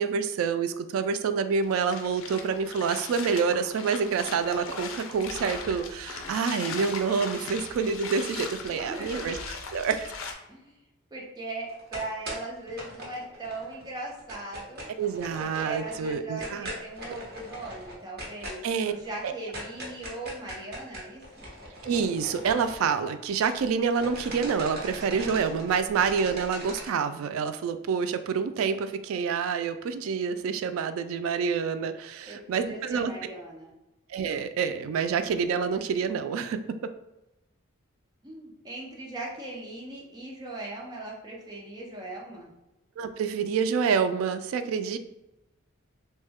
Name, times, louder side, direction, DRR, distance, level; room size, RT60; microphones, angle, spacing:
voice 1, 0.0-9.4 9.7-10.1 15.0-16.7 18.6-18.9 19.2-19.3 21.8-33.1 34.1-36.6 43.0-45.0, right 6 dB, 75° right, 11 dB, 0.3 m, -27 dB
sound 1, 1.6-10.3, left 4 dB, 70° left, 0.5 m, -39 dB
voice 2, 8.6-9.2 10.5-10.8 11.1-14.9 15.4-21.5 32.3-33.7 38.2-42.5, right 2 dB, 20° right, -3 dB, 0.7 m, -39 dB
sound 2, 11.7-13.8 14.1-23.7 23.9-26.9, equal, 50° right, 0.9 m, -40 dB
3.1 x 2.2 x 3.4 m, 0.97 s
head